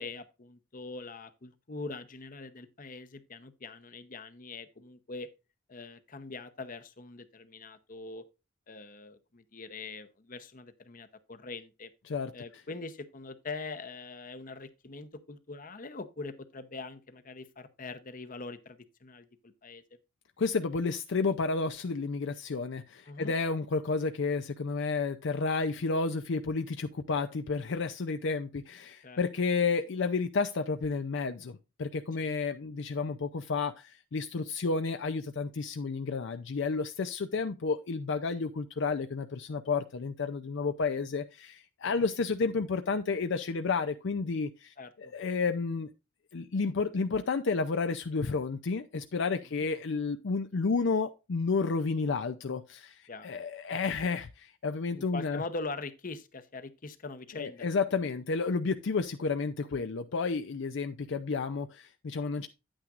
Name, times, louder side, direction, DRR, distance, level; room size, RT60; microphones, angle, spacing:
voice 1, 0.0-5.3 5.7-8.2 8.7-11.9 12.3-19.8 23.1-23.3 29.0-29.2 41.8-42.1 44.8-45.1 53.1-53.4 55.0-57.7 58.0-58.1, left 3 dB, 45° left, 0.9 m, -43 dB
voice 2, 20.4-45.9 46.3-55.4 57.3-62.5, left 4 dB, 65° left, 0.5 m, -31 dB
9.3 x 8.8 x 2.5 m
head